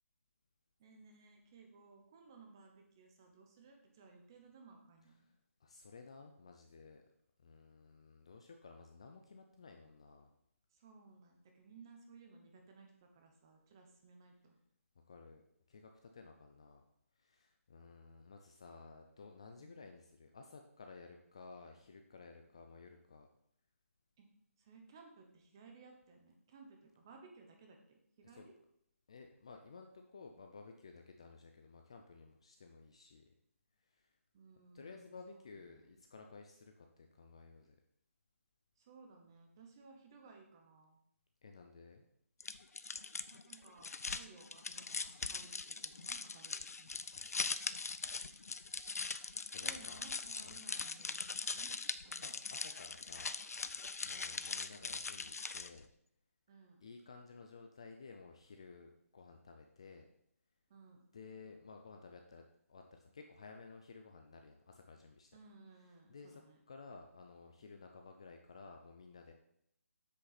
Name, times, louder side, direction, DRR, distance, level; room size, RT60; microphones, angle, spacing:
voice 1, 0.8-5.3 10.7-14.6 19.6-19.9 24.2-24.3 24.6-28.5 34.3-35.9 38.8-41.0 43.3-46.9 49.6-51.7 52.0-52.3 56.5-56.9 60.7-61.1 65.3-66.6, right 4 dB, 15° right, 3 dB, 0.8 m, -59 dB
voice 2, 5.6-7.0 7.4-10.3 15.1-15.4 15.7-16.8 17.2-23.3 28.2-28.5 29.1-33.2 33.9-34.1 34.7-37.8 41.4-42.0 47.1-47.6 48.2-48.5 49.5-50.0 50.4-50.6 52.2-53.4 54.0-55.8 56.8-60.1 61.1-62.4 62.7-65.3 66.1-66.4 66.7-69.3, left 4 dB, 20° left, 4 dB, 0.4 m, -55 dB
sound 1, 42.4-55.8, left 4 dB, 85° left, 0.5 m, -41 dB
7.7 x 6.3 x 4.1 m, 0.73 s
hypercardioid pair, 175°, 8 cm